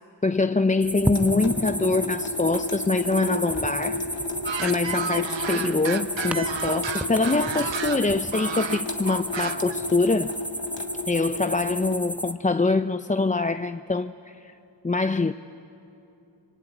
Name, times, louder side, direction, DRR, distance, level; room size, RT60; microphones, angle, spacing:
voice 1, 0.2-4.0 4.6-10.3 11.1-14.5 14.8-15.3, left 3 dB, 20° left, 0.5 m, -24 dB
sound 1, 0.8-12.3, equal, 5° right, 0.9 m, -32 dB
Water tap faucet / Sink (filling or washing) / Drip, 1.1-12.0, left 3 dB, 75° left, 1.9 m, -34 dB
sound 2, 4.5-9.8, right 7 dB, 75° right, 0.9 m, -32 dB
26.0 x 22.0 x 9.0 m
cardioid pair, 40°, 44 cm